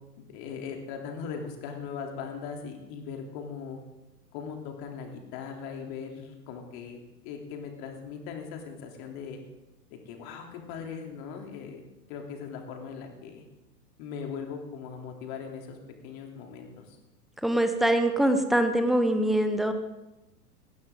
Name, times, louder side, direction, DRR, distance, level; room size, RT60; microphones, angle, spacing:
voice 1, 0.2-3.8 4.3-9.4 9.9-11.8 12.1-13.4 14.0-15.8 16.0-17.0, left 6 dB, 35° left, 3 dB, 3.2 m, -39 dB
voice 2, 17.4-19.7, right 1 dB, ahead, 7 dB, 1.0 m, -23 dB
20.5 x 16.5 x 3.8 m, 0.97 s
figure-of-eight pair, 100°, 49 cm